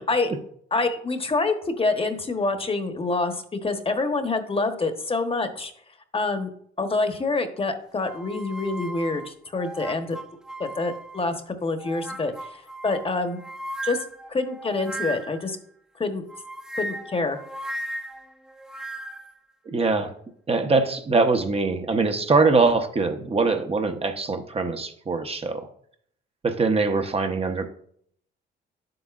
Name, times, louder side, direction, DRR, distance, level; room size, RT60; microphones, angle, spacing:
voice 1, 0.7-5.7 6.1-6.5 6.8-10.2 10.6-13.4 13.8-14.0 14.3-15.6 16.0-16.2 16.7-17.4, left 3 dB, 30° left, 7 dB, 1.1 m, -26 dB
sound 1, 8.1-11.3 11.8-15.5 16.3-19.3, right 1 dB, 5° right, 0.5 m, -37 dB
voice 2, 19.7-20.1 20.5-25.7 26.4-27.7, right 3 dB, 30° right, 6 dB, 0.9 m, -22 dB
10.0 x 7.8 x 2.5 m, 0.66 s
cardioid pair, 90°, 20 cm